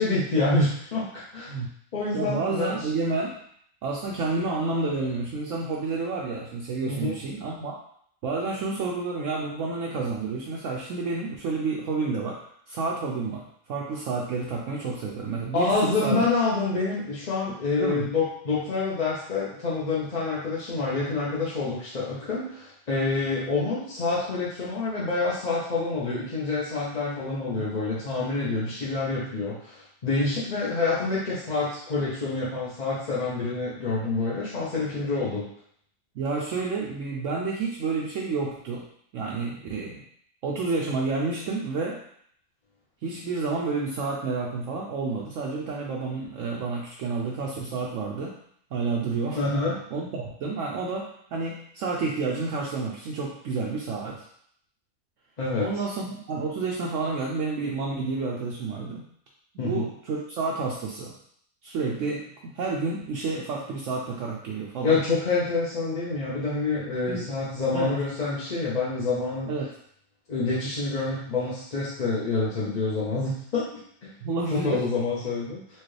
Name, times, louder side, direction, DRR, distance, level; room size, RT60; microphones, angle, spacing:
voice 1, 0.0-1.6 1.9-2.7 6.9-7.1 15.5-35.4 49.4-49.8 55.4-55.7 59.6-59.9 64.8-69.5 70.3-74.1 74.5-75.6, left 3 dB, 40° left, -8 dB, 0.7 m, -27 dB
voice 2, 2.1-3.3 3.8-7.7 8.2-12.4 12.7-16.2 17.8-18.1 27.6-27.7 36.2-38.9 39.1-40.0 40.4-42.0 43.0-48.4 48.7-49.4 49.9-54.2 55.6-59.0 59.5-61.2 61.6-65.0 67.1-67.3 67.7-67.9 69.5-69.7 74.2-74.9, right 4 dB, 65° right, -2 dB, 0.8 m, -30 dB
4.4 x 2.4 x 3.2 m, 0.65 s
omnidirectional pair, 1.6 m